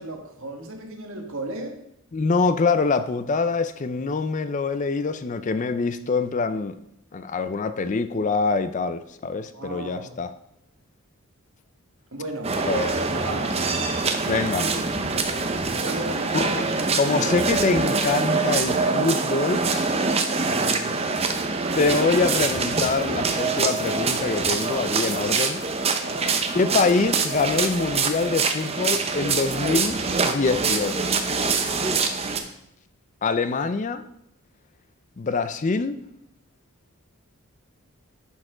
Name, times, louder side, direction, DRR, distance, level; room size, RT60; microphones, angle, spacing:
voice 1, 0.0-1.8 9.5-10.2 12.1-12.6 13.1-13.6 15.8-16.5 20.4-21.2 26.0-26.4, right 2 dB, 65° right, 2 dB, 1.5 m, -35 dB
voice 2, 2.1-6.8 7.1-10.3 12.7-12.9 14.3-14.8 16.3-16.6 16.9-19.9 21.7-25.6 26.5-30.0 30.2-31.1 33.2-34.0 35.2-35.9, left 4 dB, 35° left, 11 dB, 0.4 m, -24 dB
sound 1, 12.4-32.4, right 4 dB, 30° right, 0.7 m, -25 dB
10.5 x 4.6 x 4.9 m, 0.78 s
head